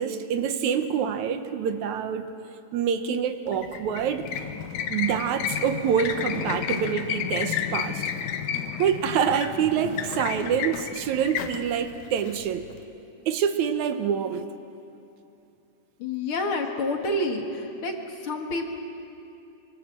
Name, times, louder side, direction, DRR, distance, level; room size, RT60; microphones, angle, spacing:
voice 1, 0.0-2.3 2.7-4.2 4.9-8.1 8.8-12.7 13.3-14.5, right 8 dB, 75° right, 9 dB, 2.2 m, -26 dB
sound 1, 3.5-12.8, left 8 dB, 80° left, 2.6 m, -32 dB
voice 2, 16.0-17.9 18.2-18.7, left 2 dB, 50° left, 3 dB, 2.3 m, -28 dB
26.0 x 24.0 x 7.5 m, 2.7 s
omnidirectional pair, 3.6 m